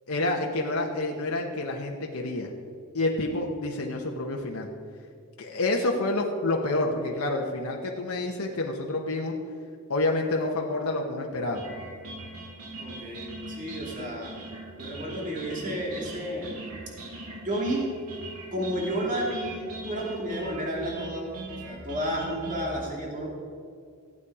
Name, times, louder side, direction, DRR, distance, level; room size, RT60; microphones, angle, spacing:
voice 1, 0.1-2.5 2.9-4.7 5.4-9.3 9.9-11.6, left 2 dB, 75° left, 0 dB, 1.2 m, -28 dB
sound 1, 11.5-22.6, right 2 dB, 90° right, 2.0 m, -41 dB
voice 2, 12.8-14.3 14.8-17.1 17.4-17.9 18.5-21.3 21.6-23.3, right 1 dB, 35° right, -2 dB, 2.8 m, -32 dB
16.0 x 8.7 x 4.9 m, 2.3 s
head